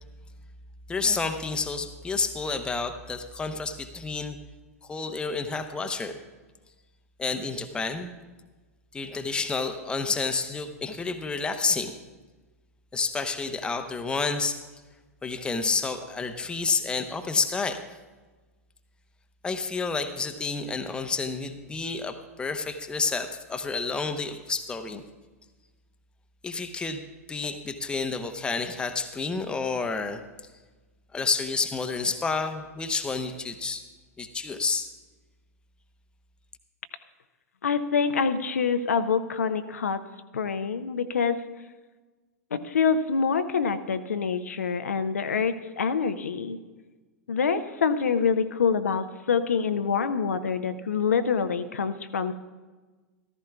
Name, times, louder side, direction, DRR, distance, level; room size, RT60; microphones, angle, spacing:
voice 1, 0.9-4.4 4.9-6.2 7.2-8.1 8.9-12.0 12.9-14.6 15.2-17.8 19.4-25.0 26.4-27.0 27.3-30.2 31.1-33.8 34.2-34.9, left 4 dB, 10° left, 7 dB, 0.7 m, -29 dB
voice 2, 37.6-40.0 40.3-41.4 42.5-46.6 47.3-52.3, left 6 dB, 70° left, 10 dB, 0.6 m, -26 dB
14.5 x 14.0 x 2.3 m, 1.3 s
figure-of-eight pair, 95°, 8 cm